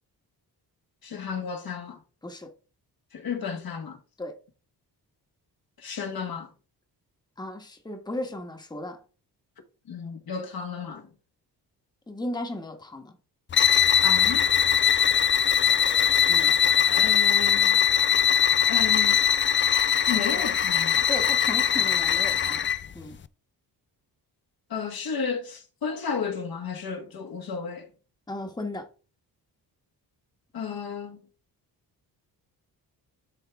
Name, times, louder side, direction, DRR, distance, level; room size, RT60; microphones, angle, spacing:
voice 1, 1.0-2.0 3.1-4.0 5.8-6.5 9.9-11.0 14.0-14.5 16.9-17.8 18.7-19.2 20.1-21.0 24.7-27.9 30.5-31.2, left 6 dB, 60° left, 1.5 m, -33 dB
voice 2, 2.2-2.5 4.2-4.4 7.4-9.0 12.1-13.2 16.3-16.5 20.1-20.2 21.1-22.7 22.9-23.2 28.3-28.9, left 1 dB, 10° left, 1.3 m, -35 dB
sound 1, 13.5-22.9, left 8 dB, 30° left, 0.4 m, -21 dB
10.0 x 3.6 x 3.5 m
cardioid pair, 80°, 41 cm